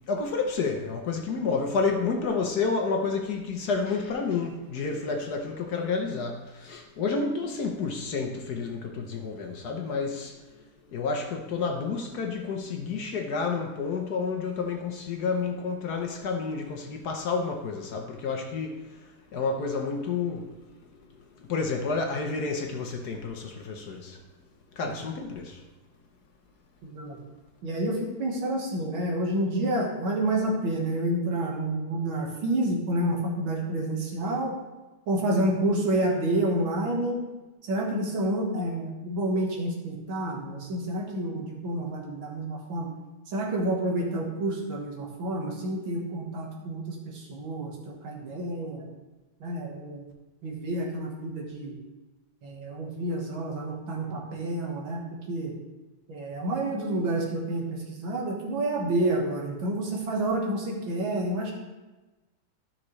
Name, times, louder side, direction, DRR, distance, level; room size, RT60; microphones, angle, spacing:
voice 1, 0.1-10.4 10.9-19.0 19.3-20.8 21.4-24.2 24.8-25.6, left 4 dB, 60° left, 1.2 m, -30 dB
voice 2, 26.8-27.2 27.6-34.5 35.1-37.2 37.6-42.9 43.3-48.9 49.4-50.1 50.4-51.7 52.4-55.5 56.1-61.5, right 1 dB, 80° right, 2.3 m, -29 dB
12.5 x 5.9 x 3.2 m
omnidirectional pair, 2.2 m